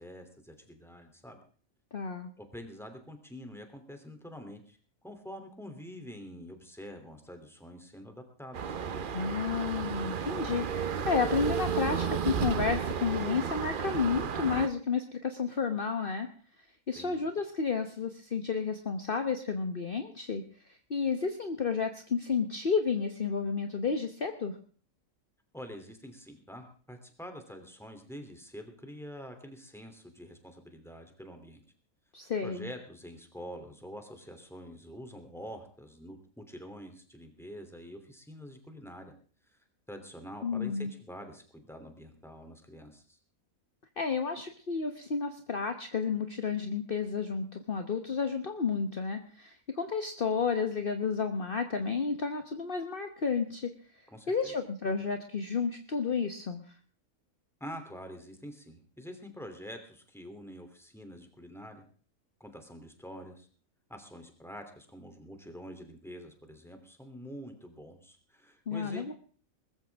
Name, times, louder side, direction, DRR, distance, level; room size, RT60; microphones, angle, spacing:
voice 1, 0.0-1.4 2.4-4.8 5.0-9.3 16.9-17.2 25.5-31.6 32.4-39.1 39.5-39.6 39.9-43.2 54.1-54.5 57.6-61.8 62.4-63.5 63.9-69.1, equal, ahead, 5 dB, 3.0 m, -46 dB
voice 2, 1.9-2.3 9.1-16.3 16.9-24.6 32.1-32.7 40.4-40.9 44.0-53.7 54.3-56.7 68.7-69.1, left 5 dB, 40° left, 7 dB, 1.3 m, -31 dB
sound 1, 8.5-14.7, right 7 dB, 45° right, 0.8 m, -33 dB
21.0 x 14.0 x 3.6 m, 0.42 s
omnidirectional pair, 1.5 m